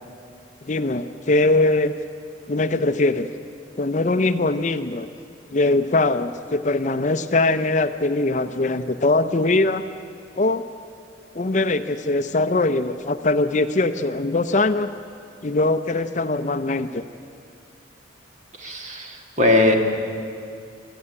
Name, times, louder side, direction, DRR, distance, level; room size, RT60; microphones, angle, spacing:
voice 1, 0.7-1.9 2.5-3.3 3.8-5.1 5.5-9.8 10.4-10.6 11.3-14.9 15.4-17.0, left 2 dB, 40° left, 10 dB, 0.6 m, -21 dB
voice 2, 18.6-19.8, left 2 dB, 40° right, 3 dB, 1.9 m, -20 dB
19.5 x 13.5 x 10.0 m, 2.5 s
head